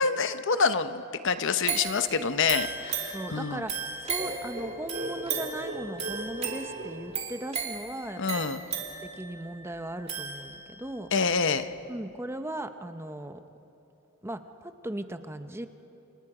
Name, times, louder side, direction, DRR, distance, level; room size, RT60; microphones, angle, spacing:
voice 1, 0.0-3.7 8.2-8.6 11.1-11.7, left 5 dB, 60° left, 10 dB, 0.9 m, -27 dB
sound 1, 1.6-10.9 11.4-11.5, right 6 dB, 30° right, 2.7 m, -36 dB
voice 2, 3.1-3.7 4.0-8.5 9.0-11.1 11.9-13.4 14.2-15.7, right 1 dB, 10° right, 8 dB, 0.8 m, -38 dB
sound 2, 4.2-7.9, right 1 dB, 50° right, 2.5 m, -39 dB
29.5 x 28.0 x 4.9 m, 2.9 s
head